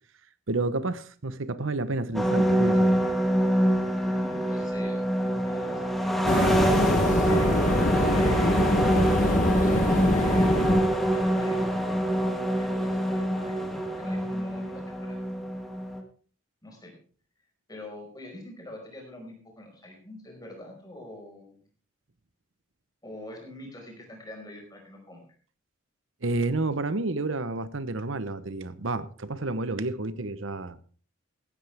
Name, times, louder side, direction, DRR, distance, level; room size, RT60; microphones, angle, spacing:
voice 1, 0.5-2.9 26.2-30.8, right 2 dB, 70° right, 0.9 m, -30 dB
sound 1, 2.1-16.0, right 1 dB, ahead, 1.8 m, -25 dB
voice 2, 4.1-6.8 7.1-8.9 9.5-15.2 16.6-17.0 17.7-21.5 23.0-25.2, left 1 dB, 20° left, 5.0 m, -44 dB
sound 2, 6.3-11.3, left 1 dB, 40° left, 1.0 m, -24 dB
16.0 x 13.0 x 3.5 m
head